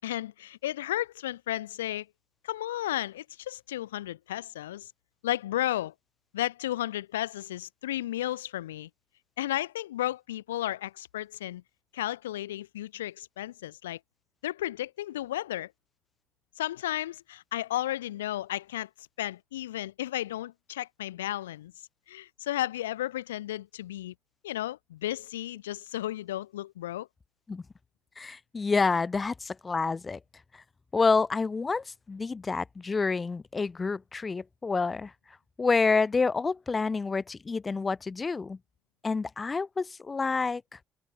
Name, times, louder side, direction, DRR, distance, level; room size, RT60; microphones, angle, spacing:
voice 1, 0.0-2.1 2.4-4.9 5.2-5.9 6.3-8.9 9.4-11.6 11.9-14.0 14.4-15.7 16.6-21.7 22.1-24.1 24.4-27.1, left 14 dB, 85° left, 5.8 m, -33 dB
voice 2, 28.2-30.2 30.9-35.1 35.6-38.6 39.0-40.6, left 4 dB, 30° left, 7.0 m, -28 dB
hypercardioid pair, 50°, 0 cm